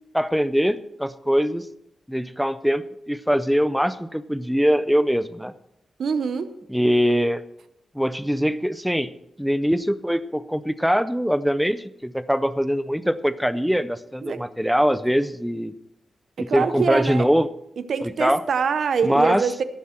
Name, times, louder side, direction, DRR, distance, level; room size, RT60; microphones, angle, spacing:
voice 1, 0.1-1.6 2.1-5.5 6.7-7.4 7.9-9.1 9.4-15.7 16.4-17.5 18.0-18.4 19.0-19.5, equal, ahead, 14 dB, 0.5 m, -22 dB
voice 2, 6.0-6.5 14.2-14.4 16.4-17.3 17.8-19.6, right 6 dB, 60° right, 11 dB, 0.6 m, -24 dB
17.5 x 7.3 x 4.3 m, 0.80 s
wide cardioid pair, 150°, 0 cm